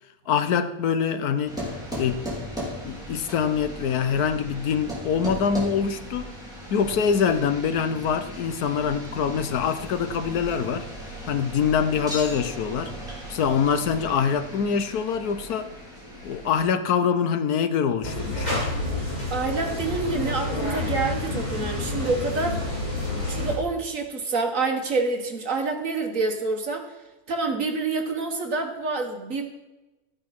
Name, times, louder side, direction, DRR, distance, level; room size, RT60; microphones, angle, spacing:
voice 1, 0.3-1.5 1.9-2.3 2.8-6.3 6.7-10.9 11.3-12.9 13.3-15.7 16.2-18.7, left 7 dB, 85° left, 10 dB, 1.4 m, -24 dB
sound 1, 1.5-16.6, equal, ahead, 4.3 m, -37 dB
sound 2, 18.0-23.5, left 2 dB, 25° left, 3.9 m, -29 dB
voice 2, 19.3-22.6 23.2-26.9 27.3-29.4, right 3 dB, 60° right, 4 dB, 1.9 m, -27 dB
13.5 x 9.0 x 6.0 m, 1.0 s
omnidirectional pair, 1.6 m